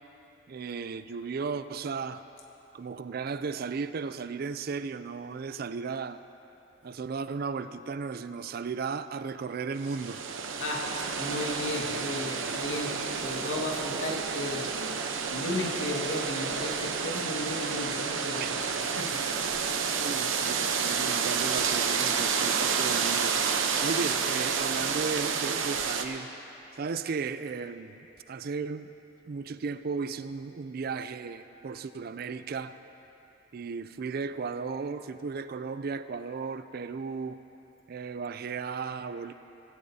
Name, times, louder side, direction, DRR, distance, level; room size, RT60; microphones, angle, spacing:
voice 1, 0.5-2.2 2.7-6.2 6.8-10.2 18.4-18.7 20.0-26.3 26.7-28.0 28.3-28.9 29.3-32.8 33.5-37.4 37.9-39.3, right 5 dB, 50° right, 12 dB, 0.4 m, -35 dB
sound 1, 9.8-26.0, right 6 dB, 85° right, 0.8 m, -30 dB
voice 2, 10.6-18.7 19.0-19.3, left 1 dB, 80° left, -2 dB, 1.9 m, -35 dB
17.0 x 16.0 x 2.8 m, 2.9 s
head